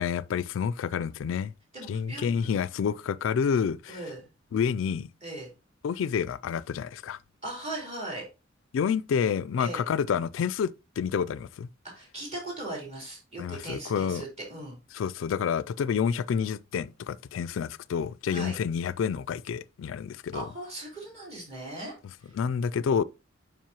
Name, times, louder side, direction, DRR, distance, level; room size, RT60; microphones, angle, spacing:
voice 1, 0.0-1.5 1.9-4.0 4.5-5.1 5.8-7.2 8.7-11.7 13.4-14.2 14.9-20.5 22.3-23.0, left 7 dB, 75° left, 0.3 m, -29 dB
voice 2, 1.7-2.3 3.9-4.3 5.2-5.5 7.4-8.2 9.6-9.8 11.9-14.8 18.3-18.5 20.3-21.9 22.2-22.3, right 2 dB, 35° right, 3.7 m, -38 dB
7.4 x 5.4 x 2.9 m
head